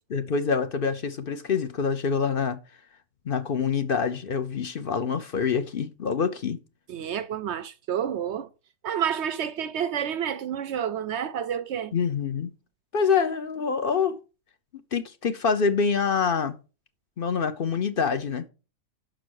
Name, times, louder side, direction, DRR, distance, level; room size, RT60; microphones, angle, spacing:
voice 1, 0.1-2.6 3.3-6.6 11.9-12.5 12.9-14.2 14.9-16.6 17.2-18.4, left 6 dB, 45° left, 0.8 m, -26 dB
voice 2, 6.9-8.5 8.8-11.9, right 9 dB, 65° right, 0.7 m, -29 dB
6.1 x 6.1 x 6.4 m
omnidirectional pair, 1.6 m